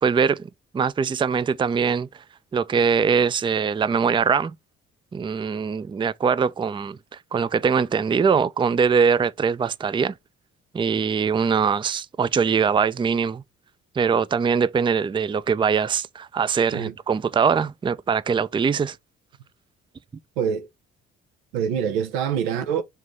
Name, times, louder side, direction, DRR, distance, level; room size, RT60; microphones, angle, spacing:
voice 1, 0.0-2.2 2.5-4.5 5.1-10.2 10.7-13.4 14.0-19.0, right 6 dB, 15° right, 0.4 m, -22 dB
voice 2, 20.4-20.7 21.5-22.8, right 8 dB, 90° right, 0.7 m, -25 dB
5.5 x 2.7 x 3.0 m
hypercardioid pair, 50°, 30 cm